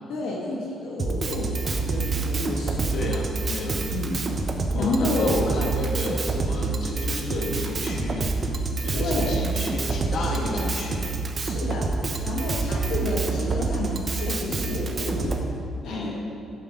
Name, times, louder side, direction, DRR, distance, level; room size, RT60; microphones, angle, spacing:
voice 1, 0.1-3.1 3.9-4.2 4.7-5.5 8.9-9.4 10.1-10.7 11.3-11.9 12.2-15.3 15.8-16.1, left 2 dB, 85° left, -3 dB, 1.3 m, -30 dB
Drum kit, 1.0-15.4, right 4 dB, 40° right, 0.8 m, -27 dB
voice 2, 2.9-3.8 4.7-8.3 8.8-11.1 15.8-16.1, left 2 dB, 60° left, -1 dB, 1.6 m, -31 dB
7.6 x 6.0 x 6.4 m, 2.6 s
cardioid pair, 90°, 0 cm